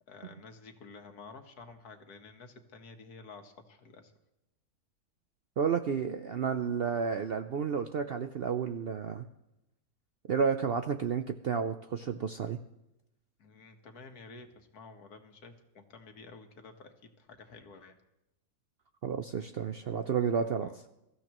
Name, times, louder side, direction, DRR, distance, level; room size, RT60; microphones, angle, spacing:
voice 1, 0.1-4.1 13.4-18.0 20.6-20.8, left 4 dB, 75° left, 6 dB, 1.8 m, -51 dB
voice 2, 5.6-9.2 10.3-12.6 19.0-20.7, right 6 dB, 65° right, 7 dB, 0.6 m, -31 dB
22.5 x 14.0 x 3.0 m, 0.90 s
omnidirectional pair, 1.6 m